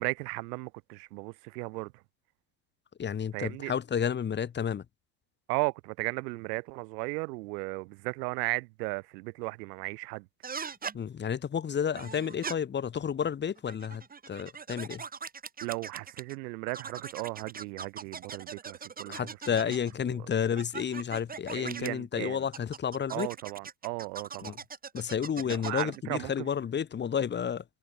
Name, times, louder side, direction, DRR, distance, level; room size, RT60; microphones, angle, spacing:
voice 1, 0.0-1.9 3.3-3.7 5.5-10.3 15.6-19.3 19.7-19.8 20.1-20.2 21.5-22.4 23.1-24.5 25.4-26.5, right 26 dB, 70° right, 1.9 m, -35 dB
voice 2, 3.0-4.8 10.9-15.0 19.1-23.3 24.4-24.6 24.9-27.6, left 8 dB, 20° left, 1.8 m, -31 dB
sound 1, 10.4-11.0 11.9-12.5 13.6-16.3 16.7-19.9 20.6-21.9 22.5-26.0, right 6 dB, 15° right, 2.8 m, -41 dB
supercardioid pair, 130°, 49 cm